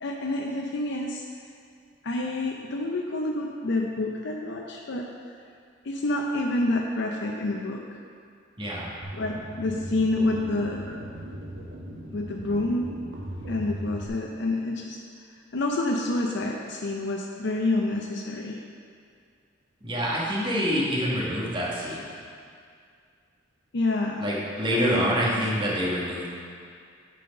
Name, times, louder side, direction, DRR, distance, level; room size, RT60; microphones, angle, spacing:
voice 1, 0.0-1.2 2.0-5.1 5.8-7.8 9.2-10.9 12.1-12.9 13.5-15.0 15.5-18.6 23.7-24.2 24.7-25.1, left 2 dB, 65° left, 0 dB, 0.6 m, -28 dB
voice 2, 8.6-8.9 19.8-22.1 24.2-26.3, equal, 25° right, -6 dB, 1.5 m, -26 dB
THe DIg, 9.0-14.1, equal, 80° right, 1.2 m, -38 dB
9.2 x 4.2 x 5.3 m, 2.3 s
head